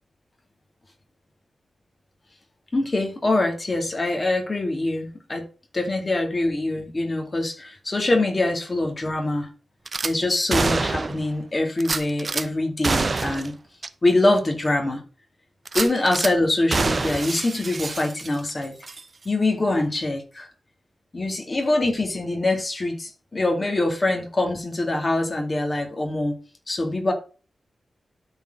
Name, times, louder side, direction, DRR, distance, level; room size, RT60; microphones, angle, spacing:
voice 1, 2.7-5.4 5.7-9.5 10.0-13.6 14.0-15.0 15.7-18.7 19.2-20.5 21.1-26.4 26.7-27.1, left 2 dB, 30° left, 2.3 m, -24 dB
Gunshot gunfire / Glass, 9.9-10.1 10.5-11.3 11.8-12.4 12.8-13.5 13.8-13.9 14.4-14.5 15.6-16.3 16.7-18.5 18.8-19.0, right 3 dB, 40° right, 0.5 m, -26 dB
12.5 x 4.4 x 3.8 m
wide cardioid pair, 130°, 0 cm